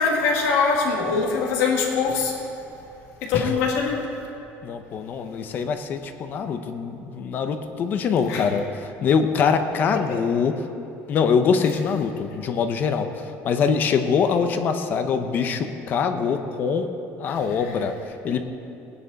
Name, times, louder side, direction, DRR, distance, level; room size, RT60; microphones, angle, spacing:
voice 1, 0.0-2.3 3.2-4.0 8.3-8.4, left 5 dB, 70° left, -1 dB, 2.0 m, -22 dB
voice 2, 4.6-10.7 11.1-16.9 17.2-17.9 18.2-18.4, left 6 dB, 35° left, 8 dB, 0.7 m, -23 dB
20.0 x 10.0 x 4.1 m, 2.8 s
cardioid pair, 175°, 5 cm